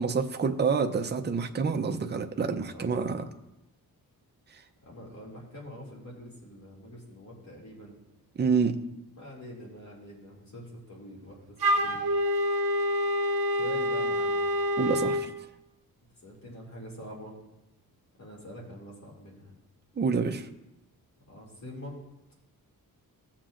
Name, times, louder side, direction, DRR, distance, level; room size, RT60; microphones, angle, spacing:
voice 1, 0.0-3.2 4.5-4.6 8.4-8.8 14.8-15.3 20.0-20.5, right 5 dB, 30° right, 5 dB, 0.6 m, -28 dB
voice 2, 2.7-3.3 4.9-8.0 9.2-11.6 11.8-12.0 13.6-14.5 16.2-17.3 18.2-19.5 21.3-21.9, equal, 50° left, -4 dB, 2.5 m, -45 dB
Wind instrument woodwind instrument, 11.6-15.3, equal, 85° right, 0.9 m, -27 dB
17.0 x 7.4 x 2.5 m, 0.93 s
wide cardioid pair, 125°, 37 cm